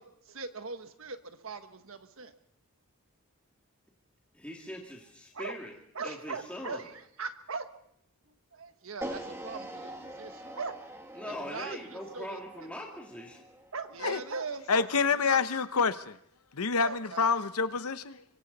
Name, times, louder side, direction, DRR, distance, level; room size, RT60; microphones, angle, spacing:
voice 1, 0.0-2.3 5.3-5.5 5.9-7.7 8.5-10.8 11.2-12.7 13.7-15.4 16.8-17.3, right 4 dB, 70° right, 1.4 m, -40 dB
voice 2, 4.3-5.7 6.0-6.9 11.1-13.4, left 1 dB, 5° left, 2.5 m, -41 dB
sound 1, 9.0-15.2, right 1 dB, 10° right, 2.2 m, -44 dB
voice 3, 14.7-16.2 16.5-18.2, left 5 dB, 85° left, 0.9 m, -27 dB
25.0 x 24.5 x 4.2 m
head